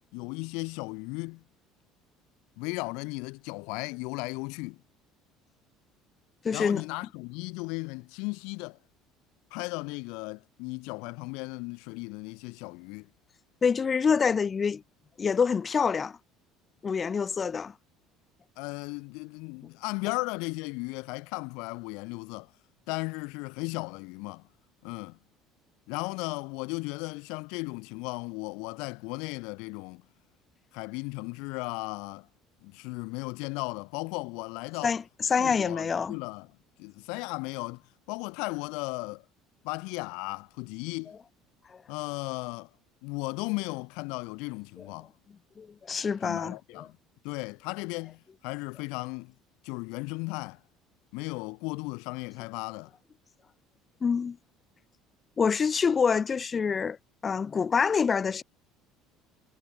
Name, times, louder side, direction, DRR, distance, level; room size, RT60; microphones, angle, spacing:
voice 1, 0.1-1.4 2.6-4.8 6.5-8.8 9.5-13.1 18.6-22.5 22.9-24.5 24.8-25.2 25.9-30.0 30.7-32.3 32.6-34.9 35.3-36.5 36.8-39.2 39.6-41.2 41.9-42.7 43.0-45.1 46.2-47.0 47.2-49.3 49.6-50.6 51.1-52.9, left 29 dB, 75° left, 3.9 m, -36 dB
voice 2, 6.4-6.8 13.6-14.8 15.2-16.2 16.8-17.7 34.8-36.2 41.7-41.8 45.6-46.9 54.0-54.4 55.4-57.0 57.2-58.4, left 6 dB, 30° left, 0.4 m, -26 dB
supercardioid pair, 90°, 0 cm